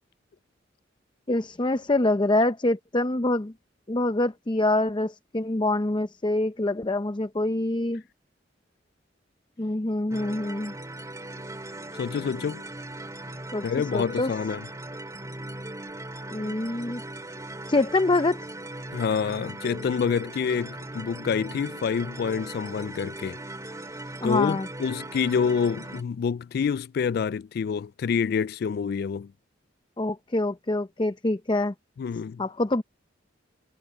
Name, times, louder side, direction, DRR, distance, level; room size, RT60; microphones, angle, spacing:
voice 1, 1.3-3.5 3.9-8.0 9.6-10.7 13.5-13.6 13.9-14.3 16.3-17.0 17.7-18.4 24.2-24.7 30.0-31.7 32.4-32.8, left 2 dB, 25° left, 0.6 m, -25 dB
sound 1, 10.1-26.0, right 1 dB, 20° right, 2.1 m, -39 dB
voice 2, 12.0-12.6 13.6-14.7 18.9-23.4 24.2-29.3 32.0-32.4, left 6 dB, 55° left, 0.3 m, -27 dB
head